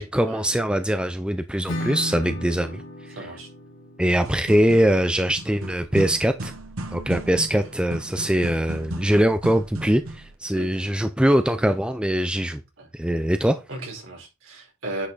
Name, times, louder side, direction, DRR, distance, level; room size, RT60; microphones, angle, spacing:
voice 1, 0.0-2.8 4.0-6.5 6.9-12.6 12.9-13.6, equal, 5° right, 0.5 m, -22 dB
Acoustic guitar / Strum, 1.7-7.1, left 1 dB, 60° left, 2.0 m, -37 dB
voice 2, 3.1-3.5 10.5-10.7 12.8-12.9 13.7-15.1, right 2 dB, 65° right, 4.9 m, -35 dB
sound 1, 4.2-10.4, right 1 dB, 90° right, 1.3 m, -35 dB
10.0 x 5.6 x 4.1 m
head